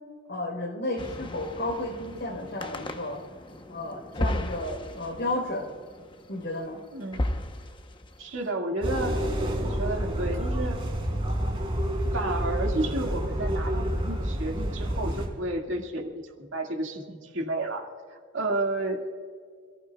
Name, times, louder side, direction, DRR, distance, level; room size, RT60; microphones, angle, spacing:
voice 1, 0.3-3.2 3.7-5.7 6.3-6.8, left 1 dB, 60° left, 1 dB, 3.9 m, -32 dB
sound 1, 1.0-8.4, left 1 dB, 25° left, 0.9 m, -35 dB
voice 2, 6.9-7.4 8.2-9.2 9.6-10.8 12.1-17.9 18.3-19.1, right 2 dB, 70° right, 2 dB, 2.0 m, -31 dB
sound 2, 8.8-15.3, equal, 30° right, 3.7 m, -28 dB
27.0 x 14.5 x 2.3 m, 2.1 s
head